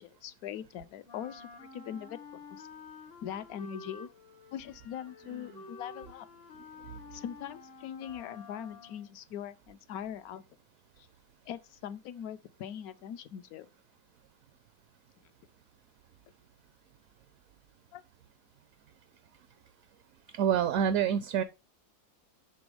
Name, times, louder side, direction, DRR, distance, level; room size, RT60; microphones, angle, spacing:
voice 1, 0.0-2.7 3.2-4.1 4.5-6.3 7.1-10.4 11.0-11.1 11.5-13.7 17.9-18.0, left 9 dB, 75° left, 1.0 m, -41 dB
Wind instrument woodwind instrument, 1.0-9.2, left 4 dB, 50° left, 0.8 m, -50 dB
Sigh, 5.1-5.7, left 1 dB, 85° right, 1.6 m, -54 dB
voice 2, 20.3-21.4, right 8 dB, 70° right, 0.9 m, -26 dB
7.1 x 3.7 x 4.8 m
omnidirectional pair, 1.6 m